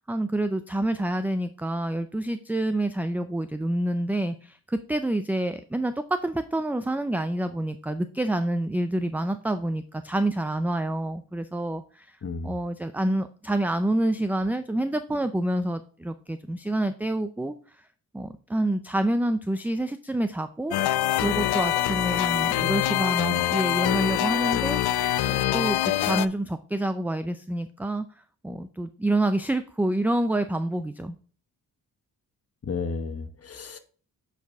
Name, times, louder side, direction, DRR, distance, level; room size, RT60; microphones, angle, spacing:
voice 1, 0.0-12.2 12.4-17.5 18.1-20.7 21.2-24.8 25.3-28.1 28.4-31.2, right 1 dB, 5° right, 0.4 m, -27 dB
voice 2, 12.2-12.5 32.6-33.8, left 4 dB, 40° left, 1.0 m, -32 dB
sound 1, 20.7-26.3, left 13 dB, 80° left, 0.5 m, -24 dB
8.0 x 4.8 x 3.5 m
cardioid pair, 95°, 38 cm